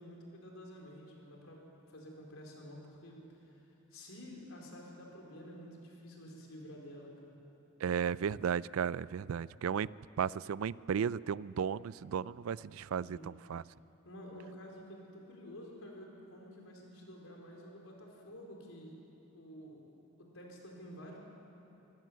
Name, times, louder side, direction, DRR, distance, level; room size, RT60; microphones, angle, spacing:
voice 1, 0.0-1.6 1.9-3.5 3.9-7.3 13.0-13.3 14.0-18.9 19.3-19.9 20.2-21.2, equal, 80° left, -1 dB, 4.5 m, -50 dB
voice 2, 7.8-9.9 10.2-13.6, right 7 dB, 80° right, 20 dB, 0.4 m, -34 dB
24.0 x 17.0 x 7.6 m, 2.9 s
head